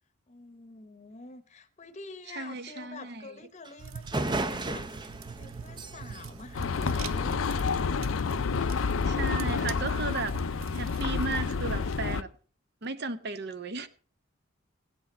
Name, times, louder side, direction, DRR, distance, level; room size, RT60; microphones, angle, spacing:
voice 1, 0.3-7.9, left 3 dB, 35° left, 0.9 m, -47 dB
voice 2, 2.4-3.3 8.6-10.4 10.7-12.3 12.8-13.9, right 3 dB, 55° right, 0.8 m, -35 dB
sound 1, 3.6-3.7 4.1-7.5, right 2 dB, 20° right, 0.5 m, -35 dB
sound 2, 3.8-11.8, right 6 dB, 90° right, 0.6 m, -43 dB
sound 3, 6.5-12.2, left 5 dB, 80° left, 0.5 m, -29 dB
16.0 x 8.4 x 4.2 m
head